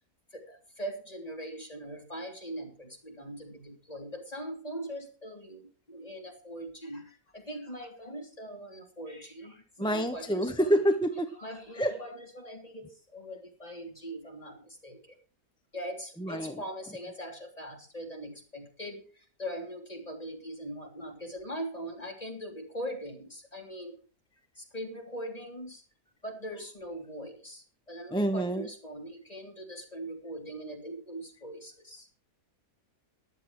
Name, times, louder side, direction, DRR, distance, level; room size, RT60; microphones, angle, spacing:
voice 1, 0.3-10.8 11.4-15.2 15.7-24.0 24.5-25.8 26.2-32.1, equal, 25° left, 2 dB, 3.1 m, -41 dB
voice 2, 9.8-11.3 11.8-11.9 16.2-16.5 28.1-28.7, right 1 dB, 5° left, 8 dB, 0.7 m, -27 dB
14.0 x 11.0 x 4.7 m, 0.38 s
omnidirectional pair, 1.6 m